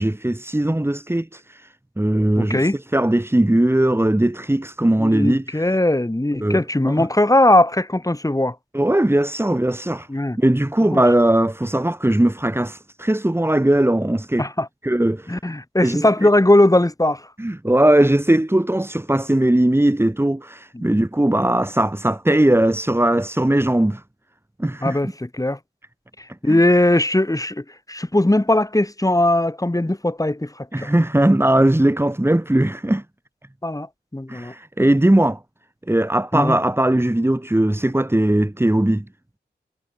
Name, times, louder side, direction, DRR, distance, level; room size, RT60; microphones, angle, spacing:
voice 1, 0.0-5.8 6.4-7.1 8.7-10.1 10.4-14.5 14.8-15.4 15.8-16.3 17.4-24.0 24.6-25.0 26.5-26.6 30.7-33.0 34.3-35.4 35.9-39.0, right 1 dB, 15° right, 1.4 m, -19 dB
voice 2, 2.4-2.8 4.8-8.6 10.1-10.4 10.8-11.0 14.4-14.7 15.3-17.3 20.7-21.0 24.8-25.6 26.2-30.9 33.6-33.9 34.1-34.5 36.3-36.6, left 1 dB, 20° left, 2.0 m, -19 dB
cardioid pair, 45°, 18 cm